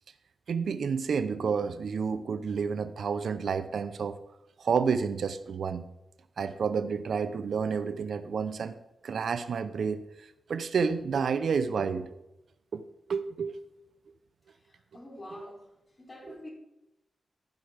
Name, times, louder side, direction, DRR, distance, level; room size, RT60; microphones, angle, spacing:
voice 1, 0.5-4.2 4.6-5.9 6.4-8.7 9.0-10.0 10.5-12.2 12.7-13.6, right 6 dB, 75° right, 12 dB, 0.7 m, -30 dB
voice 2, 14.5-15.7 16.0-16.5, left 1 dB, 35° left, 0 dB, 3.7 m, -47 dB
15.0 x 6.0 x 5.0 m, 0.88 s
cardioid pair, 60°, 0 cm